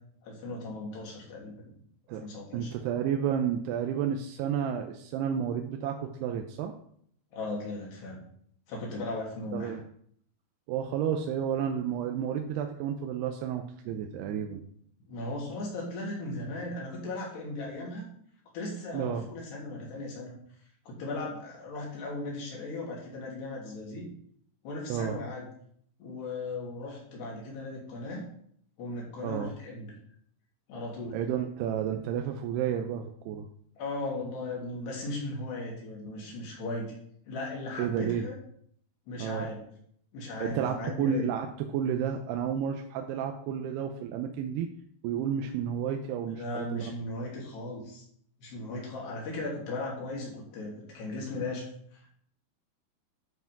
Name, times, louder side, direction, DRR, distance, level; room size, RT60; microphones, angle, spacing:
voice 1, 0.2-1.6 2.2-2.7 7.3-8.2 8.7-9.8 15.1-18.1 18.5-20.4 20.9-24.1 24.6-25.5 26.0-28.2 28.8-29.9 30.7-31.2 33.8-36.9 37.3-38.3 39.1-39.7 40.1-41.3 46.3-48.0 48.4-52.1, left 2 dB, 85° left, -3 dB, 5.3 m, -37 dB
voice 2, 2.5-6.7 9.5-9.8 10.7-14.6 18.9-19.3 24.9-25.2 29.2-29.5 31.1-33.5 37.8-38.3 39.2-39.5 40.4-44.7 45.0-46.9, right 8 dB, 90° right, 4 dB, 2.8 m, -31 dB
11.5 x 5.8 x 6.0 m, 0.65 s
omnidirectional pair, 4.7 m